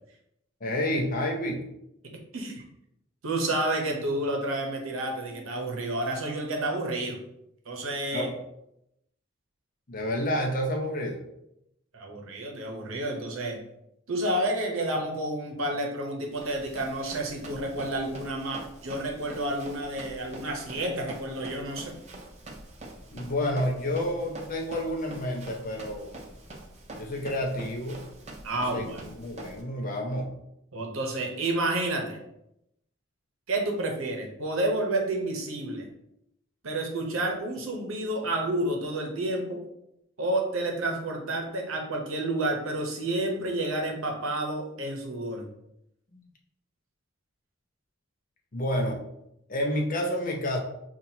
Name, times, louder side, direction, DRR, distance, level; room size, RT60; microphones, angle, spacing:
voice 1, 0.6-1.6 8.1-8.3 9.9-11.2 23.1-26.1 27.0-28.0 28.7-30.3 46.1-46.2 48.5-49.0 49.5-50.6, left 1 dB, 40° left, 1 dB, 0.6 m, -29 dB
voice 2, 2.0-2.6 3.2-7.2 7.7-8.3 11.9-13.6 14.1-22.0 28.4-29.1 30.7-32.2 33.5-35.9 36.6-39.6 40.2-45.5, right 1 dB, 80° right, 2 dB, 0.8 m, -30 dB
Run, 16.3-29.6, right 1 dB, 30° right, 0.5 m, -45 dB
5.7 x 2.4 x 2.8 m, 0.81 s
head